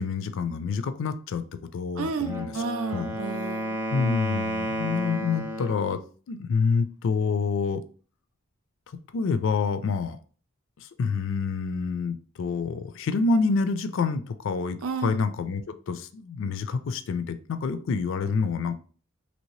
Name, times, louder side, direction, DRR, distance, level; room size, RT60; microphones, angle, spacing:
voice 1, 0.0-1.4 1.7-2.5 2.9-3.1 3.9-6.0 6.3-7.8 9.1-10.2 10.8-15.6 15.9-18.8, left 4 dB, 65° left, 11 dB, 0.4 m, -27 dB
voice 2, 2.0-3.8 14.8-15.2, right 4 dB, 85° right, 8 dB, 0.4 m, -32 dB
Wind instrument woodwind instrument, 2.1-5.9, equal, 10° right, 0.6 m, -32 dB
3.1 x 2.7 x 3.0 m, 0.41 s
head